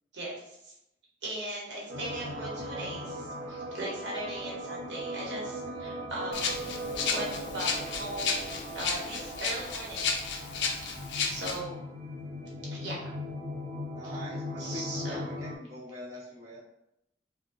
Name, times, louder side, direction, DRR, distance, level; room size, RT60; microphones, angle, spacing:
voice 1, 0.1-0.7 1.2-6.8 7.1-10.2 11.3-11.9 12.7-13.1 14.6-15.2, right 1 dB, 75° right, -4 dB, 1.0 m, -39 dB
sound 1, 1.9-15.6, equal, 50° right, 0.5 m, -39 dB
Rattle (instrument), 6.3-11.6, left 5 dB, 75° left, 0.4 m, -33 dB
voice 2, 13.9-16.6, equal, 15° right, -9 dB, 0.8 m, -44 dB
2.5 x 2.1 x 3.7 m, 0.84 s
head